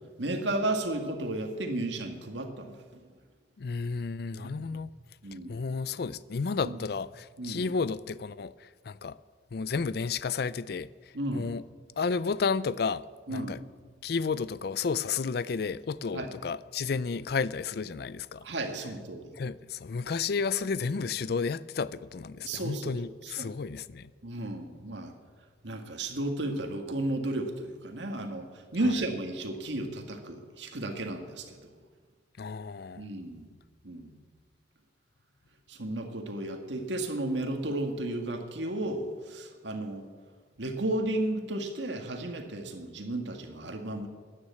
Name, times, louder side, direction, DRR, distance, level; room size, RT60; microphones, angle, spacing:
voice 1, 0.2-3.0 4.4-4.8 5.2-5.7 6.6-6.8 7.4-7.7 11.1-11.5 13.3-13.6 16.1-16.3 18.4-19.3 22.4-22.9 23.2-23.5 24.2-25.1 25.6-31.7 33.0-33.5 33.8-34.1 35.7-40.1 40.6-44.1, right 1 dB, 80° right, 1.9 m, -33 dB
voice 2, 3.6-4.9 5.5-9.2 9.5-10.9 11.3-11.6 12.0-13.6 14.0-18.5 19.4-24.1 32.4-33.1, left 5 dB, 60° left, 0.4 m, -32 dB
13.0 x 10.0 x 8.5 m
head